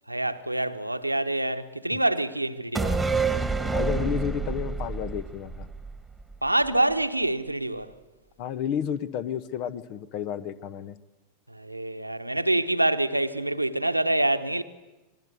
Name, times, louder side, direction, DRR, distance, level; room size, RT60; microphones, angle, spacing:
voice 1, 0.1-3.0 6.4-7.9 11.5-14.6, right 1 dB, 85° right, 1.0 m, -26 dB
sound 1, 2.7-6.3 6.6-6.7, right 4 dB, 5° right, 1.8 m, -28 dB
voice 2, 3.7-5.7 8.4-11.0, left 9 dB, 45° left, 1.0 m, -31 dB
27.0 x 20.0 x 8.1 m
figure-of-eight pair, 90°, 0 cm